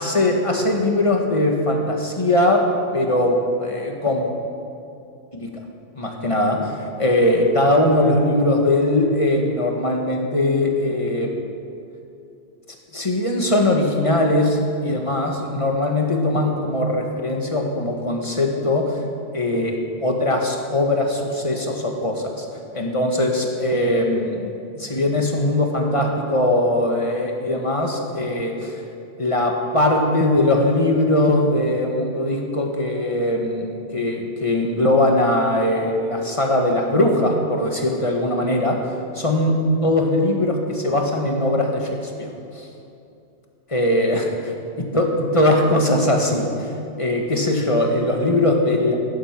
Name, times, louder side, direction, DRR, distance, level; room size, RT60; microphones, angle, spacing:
voice 1, 0.0-2.6 2.9-4.3 5.3-5.5 6.0-11.3 12.9-19.0 19.3-22.5 22.7-28.7 29.2-38.8 39.2-39.6 39.8-42.7 43.7-44.3 44.8-46.5 47.0-48.9, left 1 dB, 25° left, 1 dB, 1.8 m, -20 dB
16.5 x 11.5 x 6.0 m, 2.6 s
omnidirectional pair, 1.3 m